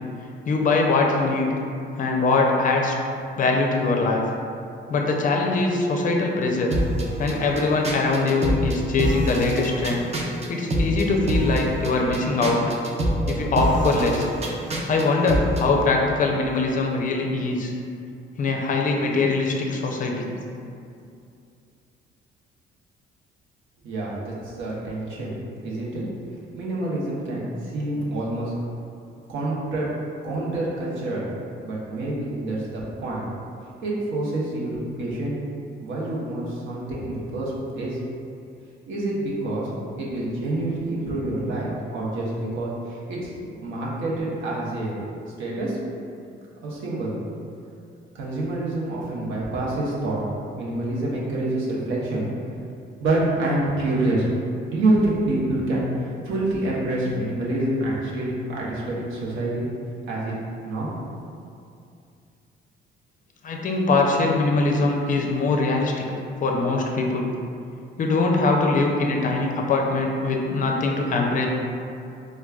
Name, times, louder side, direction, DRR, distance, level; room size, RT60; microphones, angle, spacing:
voice 1, 0.5-1.5 2.0-2.9 3.4-4.2 4.9-6.7 7.2-10.0 10.5-12.6 13.3-14.3 14.9-17.7 18.4-20.3 63.4-66.0 66.4-67.3 68.0-71.5, left 3 dB, 40° left, 1 dB, 0.5 m, -22 dB
sound 1, 6.7-15.7, right 1 dB, 35° right, 0.5 m, -26 dB
voice 2, 23.8-26.0 26.5-28.5 29.3-29.9 30.2-31.3 31.6-33.3 33.8-35.4 35.8-38.0 38.9-39.7 40.0-45.0 45.4-45.8 46.6-47.1 48.1-50.2 50.6-52.2 52.7-54.3 54.7-59.7 60.1-60.3 60.6-61.1, right 2 dB, 80° right, -6 dB, 0.8 m, -27 dB
4.6 x 2.2 x 2.3 m, 2.5 s
cardioid pair, 90°, 20 cm